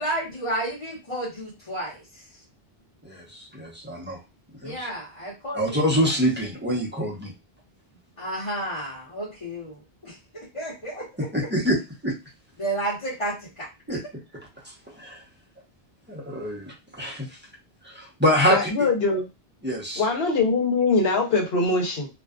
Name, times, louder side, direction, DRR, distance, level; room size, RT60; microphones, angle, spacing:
voice 1, 0.0-2.0 4.6-6.1 8.2-11.3 12.6-14.0, right 1 dB, 30° left, -9 dB, 1.1 m, -32 dB
voice 2, 3.0-4.2 4.6-4.9 5.5-7.3 11.3-11.8 12.0-12.1 13.9-14.0 15.0-15.2 16.1-17.3 17.8-18.9 19.6-20.0, equal, 10° right, -4 dB, 0.7 m, -25 dB
voice 3, 18.5-19.3 20.0-22.1, left 3 dB, 70° left, 1 dB, 1.0 m, -22 dB
2.5 x 2.3 x 2.3 m, 0.26 s
omnidirectional pair, 1.1 m